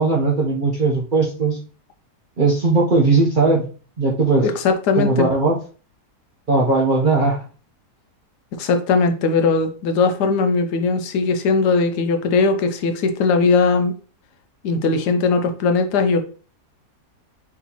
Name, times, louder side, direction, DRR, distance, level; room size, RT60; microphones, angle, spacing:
voice 1, 0.0-1.6 2.4-3.7 4.0-4.5 5.0-5.5 6.5-7.4, right 3 dB, 50° right, -4 dB, 0.6 m, -18 dB
voice 2, 4.4-5.3 8.6-13.9 14.6-16.2, left 4 dB, 80° left, 7 dB, 1.2 m, -19 dB
4.0 x 3.5 x 2.9 m, 0.38 s
omnidirectional pair, 1.8 m